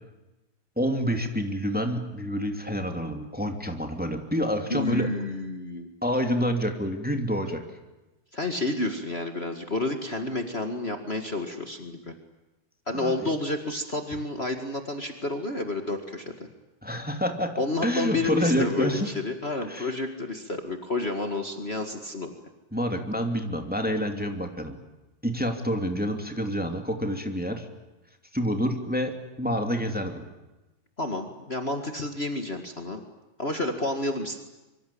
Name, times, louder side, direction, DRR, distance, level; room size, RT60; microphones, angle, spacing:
voice 1, 0.7-5.1 6.0-7.6 12.9-13.3 16.8-17.5 17.8-19.1 19.7-19.9 22.7-24.8 25.2-27.7 28.3-30.2, equal, 5° right, 4 dB, 1.7 m, -28 dB
voice 2, 4.7-5.9 8.3-12.1 12.9-16.5 17.6-22.3 31.0-33.0 33.4-34.4, left 2 dB, 75° left, 5 dB, 0.5 m, -30 dB
25.5 x 24.5 x 8.6 m, 1.0 s
omnidirectional pair, 4.7 m